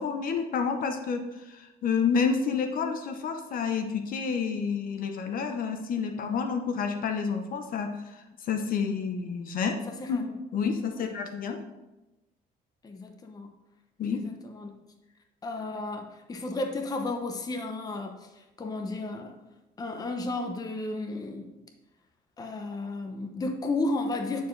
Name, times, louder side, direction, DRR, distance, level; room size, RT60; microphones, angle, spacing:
voice 1, 0.0-9.8 10.1-11.6 14.0-14.2, left 6 dB, 55° left, 5 dB, 0.8 m, -29 dB
voice 2, 9.9-10.3 10.9-11.1 12.8-13.5 14.1-14.7 15.4-19.4 19.8-21.6 22.4-24.5, left 2 dB, 20° left, 5 dB, 0.7 m, -33 dB
9.1 x 4.5 x 3.2 m, 1.0 s
cardioid pair, 110°, 17 cm